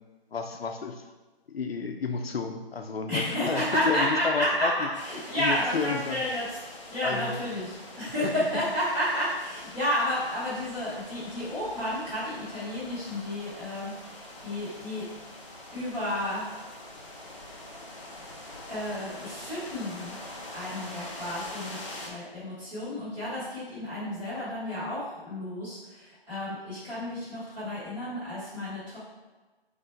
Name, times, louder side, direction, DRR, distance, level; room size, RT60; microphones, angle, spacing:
voice 1, 0.3-1.0 1.5-4.9 5.4-6.2 7.0-7.4 8.2-8.3, left 5 dB, 75° left, 5 dB, 0.6 m, -31 dB
voice 2, 3.1-4.7 5.0-6.6 6.9-7.7 8.0-15.1 15.7-16.5 18.7-20.2 20.5-21.8 22.0-29.0, equal, 5° right, -14 dB, 0.9 m, -31 dB
sound 1, 4.9-22.1, left 1 dB, 30° left, 0.6 m, -44 dB
3.8 x 3.2 x 4.3 m, 1.2 s
hypercardioid pair, 165°, 31 cm